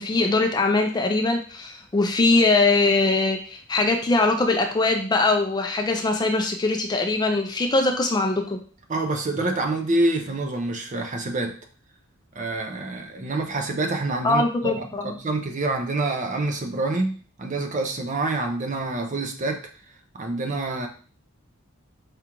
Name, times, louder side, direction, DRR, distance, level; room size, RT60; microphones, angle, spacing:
voice 1, 0.0-8.6 14.2-15.1, left 3 dB, 20° left, 4 dB, 0.4 m, -22 dB
voice 2, 8.9-11.5 12.3-19.6 20.1-20.9, right 2 dB, 35° right, 4 dB, 0.5 m, -27 dB
5.0 x 2.4 x 2.9 m, 0.41 s
head